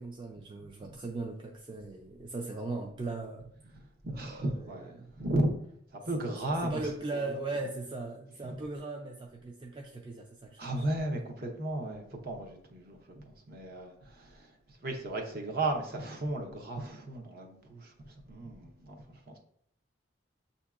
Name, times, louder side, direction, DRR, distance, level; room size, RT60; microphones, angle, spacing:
voice 1, 0.0-3.5 4.1-4.5 5.0-5.1 6.1-6.4 6.6-10.9, right 3 dB, 25° right, 2 dB, 0.3 m, -38 dB
voice 2, 3.7-5.5 5.9-6.9 7.3-7.4 10.6-19.4, right 1 dB, 50° right, 2 dB, 0.8 m, -35 dB
7.2 x 2.7 x 2.4 m, 0.68 s
head